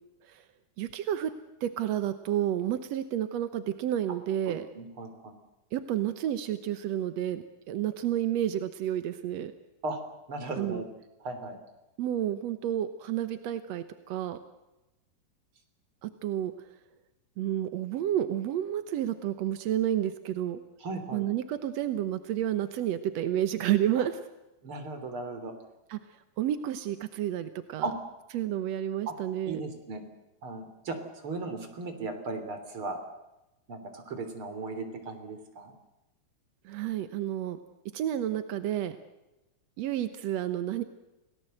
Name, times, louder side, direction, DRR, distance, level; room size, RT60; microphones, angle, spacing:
voice 1, 0.8-1.3 1.6-4.7 5.7-9.5 10.6-10.8 12.0-14.4 16.0-16.5 17.4-20.6 21.1-24.2 25.9-26.0 26.4-27.9 28.3-29.6 36.6-37.6 37.9-39.0 39.8-40.8, right 11 dB, 70° right, 11 dB, 1.6 m, -30 dB
voice 2, 4.5-5.3 9.8-10.0 10.3-10.9 11.2-11.6 20.8-21.2 24.0-24.1 24.6-25.5 27.8-27.9 29.1-29.2 29.5-30.0 30.4-31.0 31.2-33.0 33.7-35.7, right 3 dB, 35° right, 6 dB, 3.8 m, -36 dB
29.0 x 18.0 x 7.9 m, 0.98 s
omnidirectional pair, 4.3 m